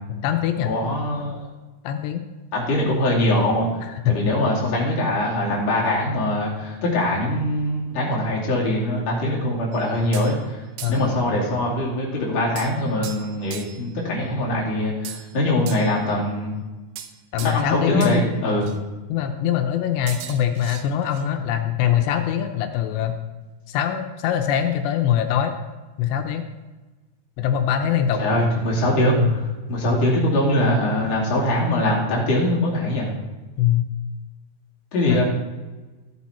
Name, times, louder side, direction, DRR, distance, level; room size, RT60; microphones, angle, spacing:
voice 1, 0.1-0.7 1.8-2.2 3.8-4.2 10.8-11.2 17.3-18.1 19.1-23.2 23.7-25.5 26.0-26.4 27.4-28.2 29.2-29.5 33.6-33.9 35.1-35.2, left 10 dB, 85° left, 6 dB, 2.9 m, -23 dB
voice 2, 0.6-1.4 2.5-3.7 4.0-10.6 10.9-16.6 17.4-18.7 28.2-29.2 29.7-33.1 34.9-35.2, left 1 dB, 40° left, -5 dB, 3.3 m, -22 dB
sound 1, 9.7-10.4 10.8-11.2 12.6-13.9 15.1-16.1 17.0-17.7 18.0-18.2 18.6-18.8 20.1-21.2, right 10 dB, 90° right, 3.1 m, -38 dB
13.5 x 8.8 x 4.2 m, 1.2 s
omnidirectional pair, 4.9 m